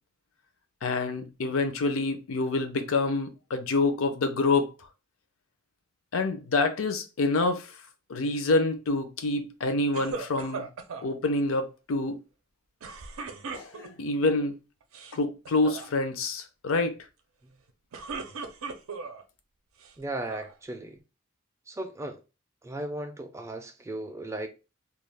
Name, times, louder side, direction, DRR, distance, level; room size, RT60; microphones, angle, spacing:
voice 1, 0.8-4.7 6.1-7.7 8.1-10.7 11.0-12.2 13.5-14.5 15.1-16.9, left 3 dB, 75° left, 0.5 m, -27 dB
sound 1, 9.9-11.1 12.8-14.1 14.8-15.2 15.5-15.9 17.7-19.2 19.8-20.5, right 4 dB, 80° right, 0.5 m, -38 dB
voice 2, 20.0-21.0 21.7-22.2 22.6-24.5, right 1 dB, 15° right, 0.3 m, -36 dB
2.3 x 2.2 x 3.2 m
head